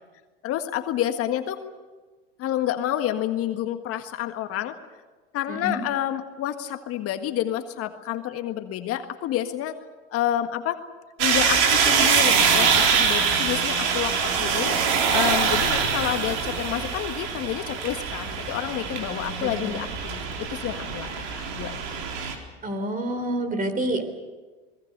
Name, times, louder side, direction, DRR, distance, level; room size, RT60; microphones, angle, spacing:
voice 1, 0.4-1.6 2.4-4.7 5.3-9.8 10.1-10.8 11.2-14.8 15.1-21.8, left 11 dB, 50° left, 8 dB, 1.7 m, -29 dB
voice 2, 5.5-5.8 19.4-19.8 22.6-24.1, right 1 dB, 25° right, 10 dB, 3.9 m, -28 dB
sound 1, 11.2-22.3, right 6 dB, 65° right, 4.0 m, -24 dB
28.0 x 20.5 x 6.7 m, 1.3 s
hypercardioid pair, 85°, 30 cm